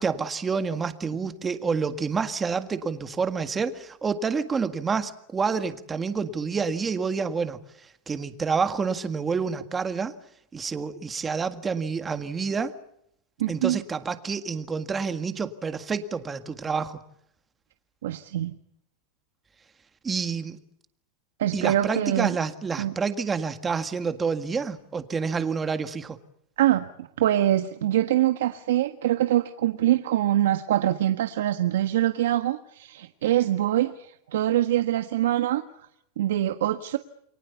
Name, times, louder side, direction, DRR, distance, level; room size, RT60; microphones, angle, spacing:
voice 1, 0.0-7.6 8.1-10.1 10.5-12.8 13.5-17.0 20.0-20.6 21.5-26.2, right 5 dB, 15° right, 9 dB, 1.8 m, -28 dB
voice 2, 13.4-13.8 18.0-18.6 21.4-22.3 22.8-22.9 26.6-35.6 36.2-37.0, right 13 dB, 85° right, 8 dB, 1.5 m, -24 dB
29.5 x 23.0 x 7.1 m, 0.75 s
supercardioid pair, 160°, 0 cm